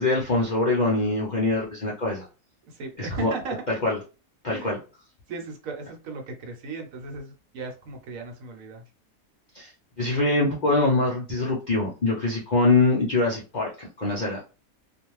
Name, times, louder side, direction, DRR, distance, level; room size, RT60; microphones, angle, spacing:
voice 1, 0.0-2.3 3.0-3.3 3.7-4.0 4.4-4.8 9.5-9.7 10.0-14.4, left 2 dB, 55° left, -4 dB, 0.5 m, -24 dB
voice 2, 2.7-3.6 4.5-4.8 5.3-8.8, right 4 dB, 70° right, 3 dB, 1.1 m, -36 dB
2.5 x 2.2 x 3.0 m, 0.32 s
omnidirectional pair, 1.5 m